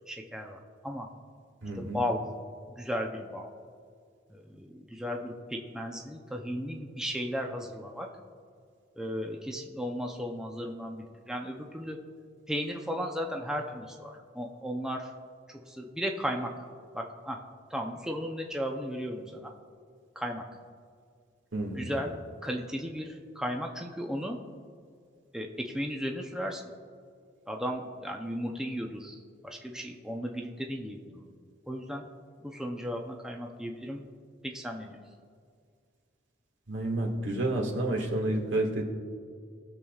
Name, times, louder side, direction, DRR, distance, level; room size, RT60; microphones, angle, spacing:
voice 1, 0.1-1.1 1.7-2.2 2.8-3.5 4.3-8.1 9.0-12.0 12.5-15.1 15.5-16.5 16.9-17.4 17.7-19.5 20.2-20.5 21.7-22.1 22.4-24.4 25.3-26.6 27.5-29.2 29.4-31.3 31.7-32.1 32.4-34.0 34.4-35.0, equal, 5° right, 1 dB, 0.6 m, -35 dB
voice 2, 1.6-2.0 21.5-21.9 36.7-38.8, right 2 dB, 85° right, 0 dB, 1.8 m, -30 dB
19.0 x 6.9 x 2.4 m, 2.1 s
head